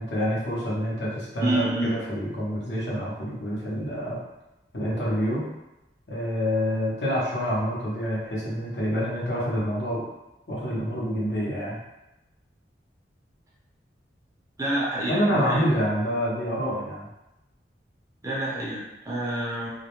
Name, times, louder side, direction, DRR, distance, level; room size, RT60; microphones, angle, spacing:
voice 1, 0.0-4.2 4.7-5.5 6.1-10.0 10.5-11.8 15.1-17.1, equal, 70° left, -6 dB, 0.8 m, -27 dB
voice 2, 1.4-2.0 14.6-15.6 18.2-19.7, right 1 dB, 15° right, -6 dB, 0.5 m, -28 dB
2.3 x 2.0 x 2.9 m, 0.95 s
head